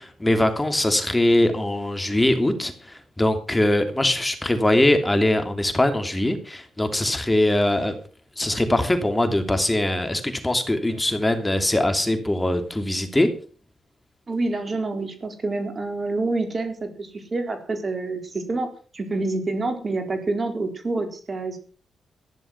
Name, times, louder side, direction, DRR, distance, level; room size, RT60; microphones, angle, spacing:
voice 1, 0.0-7.9 8.4-13.3, left 1 dB, 15° left, 7 dB, 3.0 m, -22 dB
voice 2, 14.3-21.6, right 2 dB, 45° right, 7 dB, 4.1 m, -27 dB
14.5 x 11.0 x 6.0 m, 0.40 s
supercardioid pair, 50°, 0 cm